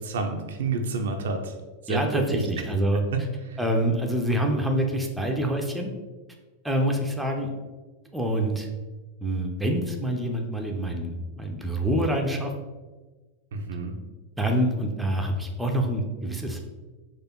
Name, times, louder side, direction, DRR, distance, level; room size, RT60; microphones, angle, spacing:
voice 1, 0.0-1.5 1.8-2.4 3.1-3.6 13.5-14.0, right 3 dB, 60° right, 4 dB, 0.5 m, -29 dB
voice 2, 1.9-3.0 3.6-5.9 6.6-7.5 8.1-8.7 9.2-12.5 14.4-16.6, right 1 dB, 5° right, 2 dB, 0.6 m, -26 dB
4.4 x 2.5 x 4.3 m, 1.3 s
figure-of-eight pair, 90°, 0 cm